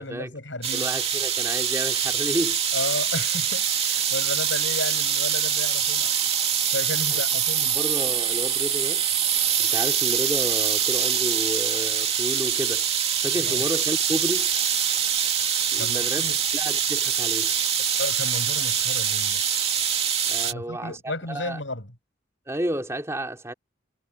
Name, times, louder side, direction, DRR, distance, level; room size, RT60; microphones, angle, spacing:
voice 1, 0.0-0.9 2.7-6.1 6.7-7.8 13.4-13.6 15.8-16.4 17.8-19.4 20.4-21.9, left 2 dB, 80° left, 7.6 m, -33 dB
sound 1, 0.6-20.5, right 8 dB, 35° right, 2.8 m, -24 dB
voice 2, 0.7-2.6 7.1-7.2 7.7-9.1 9.6-12.9 13.2-14.5 15.7-17.5 20.3-21.6 22.5-23.5, right 1 dB, 15° right, 3.0 m, -31 dB
head